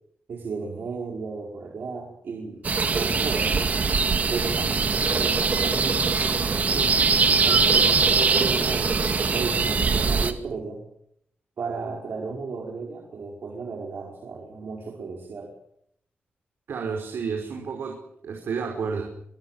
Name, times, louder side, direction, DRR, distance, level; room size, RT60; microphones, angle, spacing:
voice 1, 0.3-3.7 4.3-10.8 11.6-15.5, right 4 dB, 65° right, 0 dB, 4.8 m, -34 dB
sound 1, 2.6-10.3, right 4 dB, 45° right, 2.1 m, -22 dB
voice 2, 16.7-19.0, right 5 dB, 85° right, 2 dB, 5.4 m, -31 dB
24.5 x 23.5 x 7.4 m, 0.72 s
wide cardioid pair, 175°, 4 cm